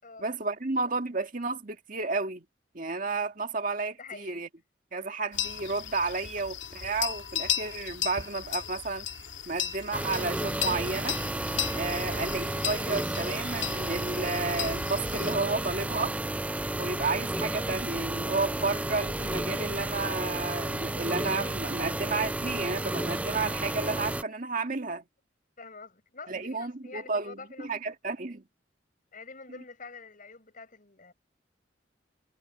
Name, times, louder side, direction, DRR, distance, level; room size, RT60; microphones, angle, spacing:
voice 1, 0.2-2.4 2.7-4.5 4.9-9.1 9.5-11.2 11.7-16.1 16.8-25.0 26.3-28.4, right 3 dB, 45° right, 1.9 m, -32 dB
voice 2, 4.0-4.4 25.6-27.7 29.1-31.1, left 4 dB, 45° left, 6.9 m, -46 dB
sound 1, 5.3-15.3, left 9 dB, 80° left, 2.1 m, -35 dB
sound 2, 9.9-24.2, right 1 dB, 10° right, 0.4 m, -32 dB
head